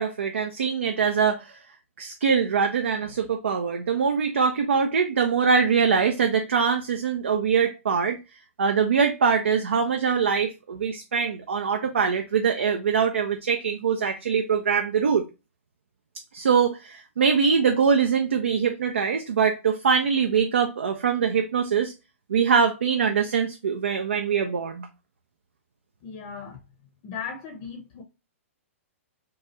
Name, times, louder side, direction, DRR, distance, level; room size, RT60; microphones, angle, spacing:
voice 1, 0.0-1.5 2.0-8.2 8.6-15.2 16.3-21.9 22.3-24.9, right 6 dB, 65° right, 0.4 m, -23 dB
voice 2, 26.0-26.6 27.0-28.0, left 6 dB, 35° left, 0.6 m, -37 dB
2.9 x 2.4 x 2.8 m
figure-of-eight pair, 110°, 7 cm